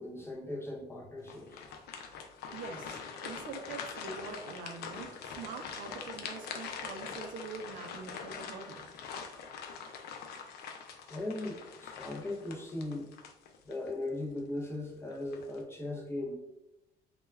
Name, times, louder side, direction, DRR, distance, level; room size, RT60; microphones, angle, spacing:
voice 1, 0.0-1.6 11.1-13.1 13.7-16.4, left 2 dB, 15° left, -1 dB, 0.5 m, -38 dB
sound 1, 1.2-13.9 14.4-14.5 15.1-15.6, left 6 dB, 70° left, 0.4 m, -44 dB
voice 2, 2.5-8.9, right 5 dB, 55° right, 5 dB, 0.4 m, -44 dB
2.2 x 2.1 x 3.1 m, 0.88 s
cardioid pair, 110°, 17 cm